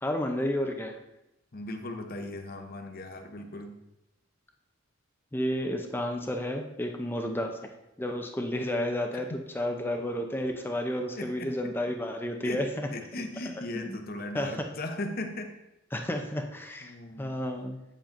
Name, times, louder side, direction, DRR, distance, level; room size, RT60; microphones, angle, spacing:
voice 1, 0.0-1.0 5.3-7.5 8.0-12.9 13.8-14.0 14.3-14.5 15.9-17.8, left 1 dB, 10° left, 3 dB, 0.5 m, -31 dB
voice 2, 1.5-3.8 11.2-11.5 12.4-12.6 12.9-15.5 16.8-17.4, left 2 dB, 45° left, 5 dB, 0.8 m, -37 dB
8.7 x 7.3 x 2.6 m, 0.93 s
head